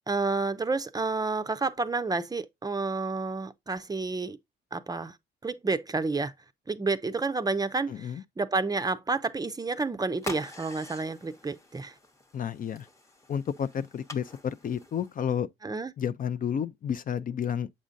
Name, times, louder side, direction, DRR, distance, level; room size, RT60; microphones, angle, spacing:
voice 1, 0.1-4.4 4.7-5.2 5.4-6.3 6.7-11.9 15.6-15.9, right 3 dB, 20° right, 0.5 m, -30 dB
voice 2, 7.9-8.2 12.3-12.9 13.3-15.5 16.0-17.7, left 8 dB, 45° left, 0.4 m, -31 dB
sound 1, 10.2-15.4, left 2 dB, 15° left, 0.8 m, -45 dB
7.3 x 5.0 x 2.6 m
cardioid pair, 90°, 20 cm